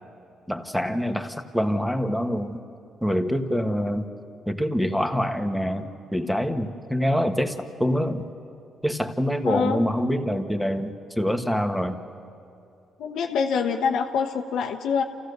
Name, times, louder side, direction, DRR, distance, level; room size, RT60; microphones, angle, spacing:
voice 1, 0.5-2.6 3.0-4.1 4.5-8.3 8.8-12.0, equal, ahead, 5 dB, 1.4 m, -25 dB
voice 2, 9.4-9.8 13.0-15.0, left 6 dB, 80° left, 2 dB, 1.0 m, -25 dB
28.0 x 15.5 x 6.7 m, 2.6 s
cardioid pair, 90°, 0 cm